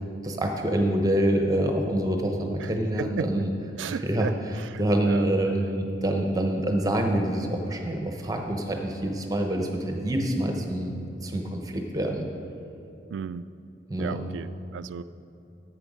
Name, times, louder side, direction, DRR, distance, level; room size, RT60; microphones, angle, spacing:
voice 1, 0.2-3.5 3.8-4.3 4.8-11.0 11.2-12.3 13.9-14.2, right 1 dB, 20° right, 3 dB, 0.8 m, -26 dB
voice 2, 2.6-3.4 3.8-5.3 13.1-13.5 14.0-15.0, right 6 dB, 75° right, 15 dB, 0.3 m, -35 dB
11.0 x 8.0 x 5.1 m, 2.7 s
head